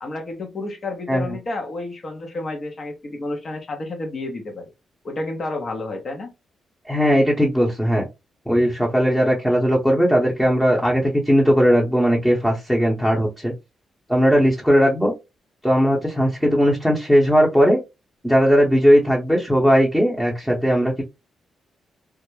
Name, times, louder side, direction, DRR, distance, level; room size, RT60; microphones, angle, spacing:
voice 1, 0.0-4.7 5.0-6.3, left 2 dB, 45° left, 3 dB, 0.6 m, -30 dB
voice 2, 6.9-8.1 8.5-13.5 14.1-15.1 15.6-17.8 18.2-21.0, equal, 5° left, -2 dB, 0.7 m, -18 dB
2.2 x 2.0 x 3.0 m, 0.24 s
cardioid pair, 85°, 0 cm